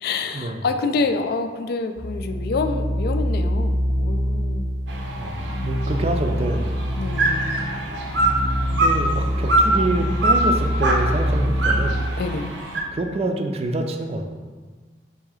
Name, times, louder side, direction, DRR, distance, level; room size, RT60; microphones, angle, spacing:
voice 1, 0.0-4.9 5.2-5.7 7.0-7.5 12.2-12.6, left 4 dB, 55° left, 7 dB, 0.3 m, -27 dB
sound 1, 2.0-12.2, equal, 90° left, 0.9 m, -26 dB
sound 2, 4.9-12.8, right 2 dB, 80° right, 0.6 m, -24 dB
voice 2, 5.2-6.7 8.7-12.0 12.9-14.2, right 2 dB, 35° right, 5 dB, 0.4 m, -26 dB
sound 3, 8.1-13.2, equal, ahead, 0.8 m, -37 dB
3.6 x 2.7 x 4.7 m, 1.4 s
head